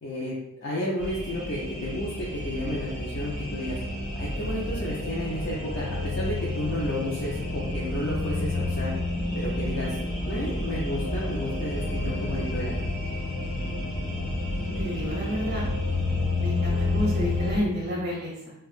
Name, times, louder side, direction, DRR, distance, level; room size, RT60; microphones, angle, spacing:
voice 1, 0.0-3.8 4.2-8.9 9.3-10.0 10.2-12.8, left 1 dB, 50° left, -5 dB, 0.6 m, -32 dB
sound 1, 1.0-17.6, left 2 dB, 30° left, 1.4 m, -30 dB
voice 2, 14.6-15.7 16.4-18.5, left 1 dB, 50° right, -4 dB, 0.8 m, -30 dB
4.5 x 2.3 x 2.4 m, 0.89 s
head